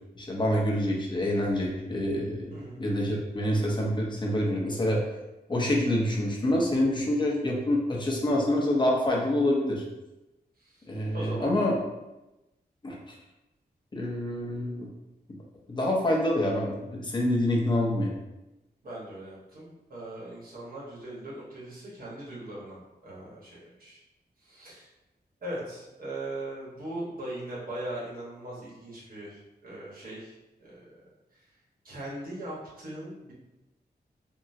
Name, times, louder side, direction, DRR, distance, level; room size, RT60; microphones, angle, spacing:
voice 1, 0.2-5.0 5.5-9.8 10.9-11.8 12.8-13.0 13.9-14.9 15.7-18.1, left 1 dB, 30° left, -2 dB, 0.6 m, -26 dB
voice 2, 2.5-2.8 10.6-10.9 11.1-11.6 18.8-24.0 24.4-24.9 25.4-30.3 30.6-31.4 31.8-33.3, right 1 dB, 60° right, -6 dB, 1.1 m, -40 dB
3.6 x 2.0 x 2.6 m, 1.0 s
wide cardioid pair, 130°, 17 cm